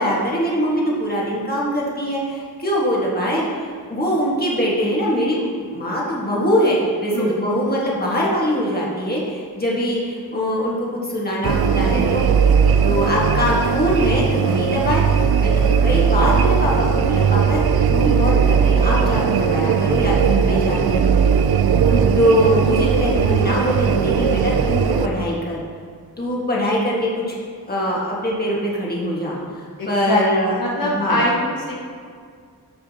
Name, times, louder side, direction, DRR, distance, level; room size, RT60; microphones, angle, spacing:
voice 1, 0.0-12.2 12.8-17.6 17.9-21.1 22.1-25.6 26.2-27.4 27.7-30.5 30.8-31.3, equal, 25° left, -5 dB, 1.7 m, -22 dB
sound 1, 11.4-25.1, right 6 dB, 70° right, 0.5 m, -18 dB
voice 2, 29.8-30.2 30.6-31.7, left 1 dB, 60° left, -4 dB, 1.5 m, -22 dB
14.0 x 5.1 x 2.9 m, 2.1 s
wide cardioid pair, 95°, 38 cm